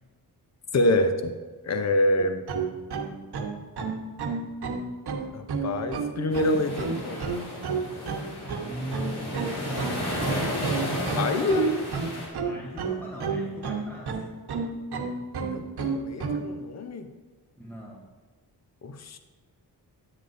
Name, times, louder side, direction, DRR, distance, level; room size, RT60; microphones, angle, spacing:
voice 1, 0.7-1.3 1.6-2.4 5.3-7.2 11.2-11.9 15.5-17.1 18.8-19.2, left 1 dB, 40° left, 8 dB, 0.8 m, -26 dB
sound 1, 2.2-16.5, right 5 dB, 75° right, 1.1 m, -30 dB
sound 2, 6.3-12.3, equal, 80° left, 2.7 m, -33 dB
voice 2, 6.5-7.1 8.6-10.1 11.3-11.6 12.4-14.3 17.6-18.1, equal, 5° left, -3 dB, 1.2 m, -40 dB
9.8 x 9.4 x 2.6 m, 1.4 s
cardioid pair, 75°, 40 cm